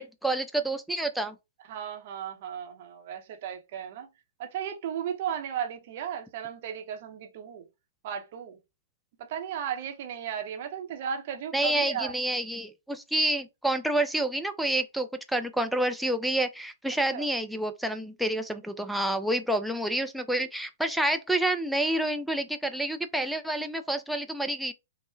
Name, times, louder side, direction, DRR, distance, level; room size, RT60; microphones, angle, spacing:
voice 1, 0.0-1.4 11.5-24.7, right 1 dB, ahead, 0.3 m, -28 dB
voice 2, 1.7-4.1 4.4-7.6 8.0-8.6 9.2-12.1 17.1-17.3, right 8 dB, 45° right, 0.7 m, -35 dB
3.4 x 2.0 x 2.6 m
figure-of-eight pair, 115°, 0 cm